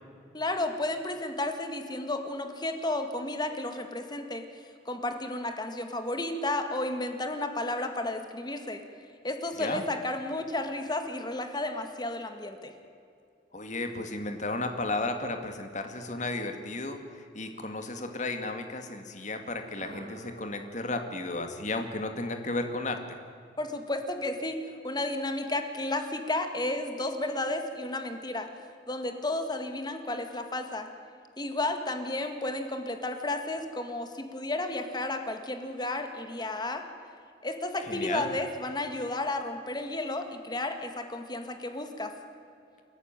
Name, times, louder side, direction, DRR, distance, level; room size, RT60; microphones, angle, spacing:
voice 1, 0.3-8.8 9.2-12.7 23.6-24.6 24.8-28.5 28.9-30.9 31.4-36.8 37.4-42.1, left 2 dB, 25° left, 6 dB, 1.9 m, -32 dB
voice 2, 13.5-23.2 37.9-38.3, left 2 dB, 45° left, 6 dB, 2.2 m, -34 dB
sound 1, 19.6-23.6, right 1 dB, 55° right, 2.8 m, -51 dB
29.0 x 11.5 x 9.1 m, 2.5 s
head